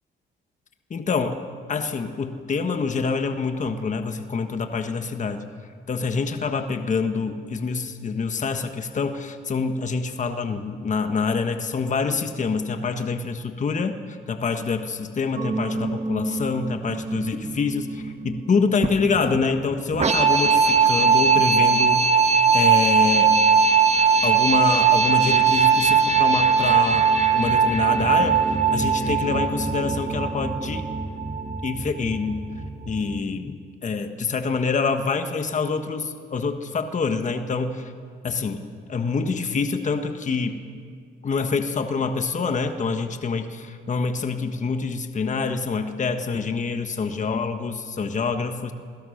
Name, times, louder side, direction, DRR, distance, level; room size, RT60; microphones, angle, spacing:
voice 1, 0.9-1.4 1.7-5.5 5.9-22.1 22.5-23.4 24.2-27.1 27.3-28.4 28.7-30.8 31.6-32.4 32.9-33.6 33.8-37.9 38.2-38.6 38.9-40.6 41.2-48.7, left 4 dB, 40° left, 7 dB, 1.4 m, -26 dB
sound 1, 15.4-33.2, right 5 dB, 35° right, 1.4 m, -20 dB
25.5 x 17.0 x 6.5 m, 2.1 s
cardioid pair, 90°, 20 cm